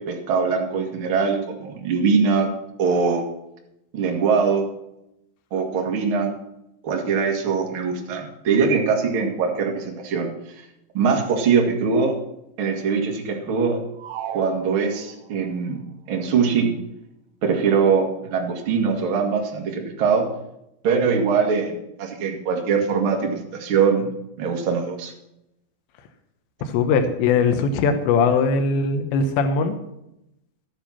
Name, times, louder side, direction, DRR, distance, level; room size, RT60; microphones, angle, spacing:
voice 1, 0.0-2.5 2.8-3.2 3.9-4.7 5.5-6.3 6.8-10.3 10.9-12.1 12.6-13.8 14.3-16.7 17.4-20.3 20.8-24.1 24.4-25.1, right 5 dB, 45° right, 1 dB, 1.9 m, -22 dB
sound 1, 14.0-15.4, right 10 dB, 75° right, 2.2 m, -35 dB
voice 2, 26.6-29.8, left 5 dB, 85° left, 8 dB, 3.3 m, -20 dB
13.0 x 10.5 x 5.8 m, 0.83 s
omnidirectional pair, 5.0 m